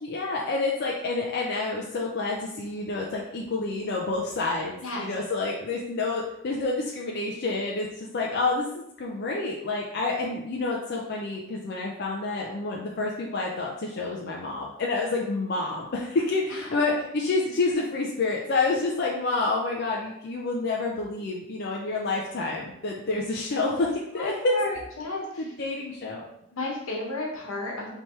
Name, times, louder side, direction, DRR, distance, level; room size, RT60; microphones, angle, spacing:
voice 1, 0.0-24.6 25.1-26.3, left 3 dB, 50° left, -2 dB, 0.4 m, -28 dB
voice 2, 24.2-25.5 26.5-28.0, left 2 dB, 80° left, -2 dB, 1.2 m, -32 dB
3.4 x 2.9 x 4.3 m, 0.80 s
head